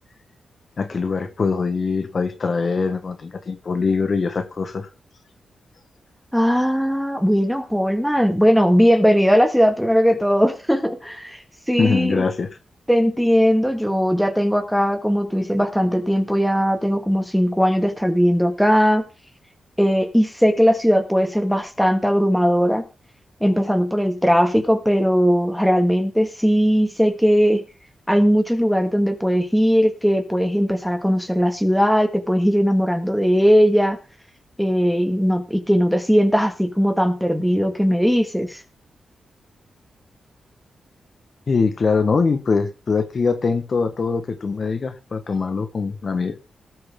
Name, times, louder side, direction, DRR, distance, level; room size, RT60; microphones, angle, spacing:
voice 1, 0.8-4.9 11.8-12.5 41.5-46.4, left 4 dB, 45° left, 9 dB, 1.3 m, -22 dB
voice 2, 6.3-11.4 11.7-12.2 12.9-19.0 19.8-22.8 23.4-27.6 28.1-34.0 34.6-38.6, equal, ahead, 7 dB, 1.9 m, -19 dB
18.5 x 7.9 x 3.7 m, 0.33 s
wide cardioid pair, 130°, 0 cm